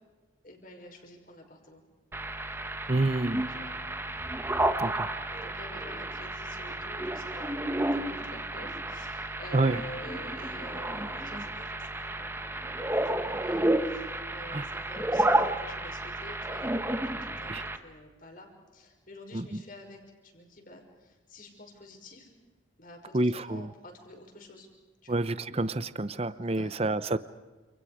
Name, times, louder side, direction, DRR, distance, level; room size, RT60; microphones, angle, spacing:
voice 1, 0.4-1.8 3.5-3.7 5.3-22.3 22.8-24.7 25.0-25.2 26.5-26.8, left 1 dB, 45° left, 3 dB, 5.9 m, -49 dB
sound 1, 2.1-17.8, right 1 dB, 10° right, 1.2 m, -31 dB
voice 2, 2.9-3.4 4.8-5.1 9.5-9.8 14.5-14.7 17.5-17.6 19.3-19.4 23.1-23.7 25.1-27.2, right 2 dB, 30° right, 14 dB, 0.7 m, -28 dB
29.5 x 28.5 x 5.1 m, 1.2 s
head